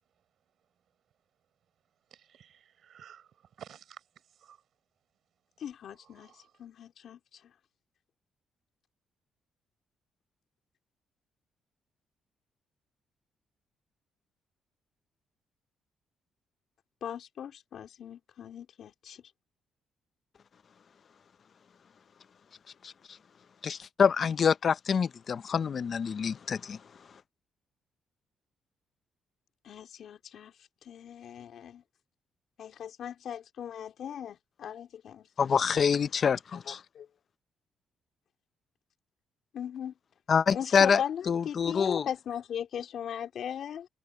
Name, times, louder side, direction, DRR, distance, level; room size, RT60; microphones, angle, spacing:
voice 1, 2.2-3.3 3.6-4.0 4.4-4.6 6.1-6.5, right 9 dB, 65° right, 5.1 m, -52 dB
voice 2, 5.6-6.3 6.6-7.2 17.0-19.2 29.6-30.5 30.9-31.8 32.6-35.7 36.7-37.1 39.5-39.9 40.5-43.9, left 9 dB, 65° left, 3.8 m, -39 dB
voice 3, 23.6-26.8 35.4-36.8 40.3-42.1, left 6 dB, 50° left, 0.6 m, -26 dB
cardioid pair, 90°, 0 cm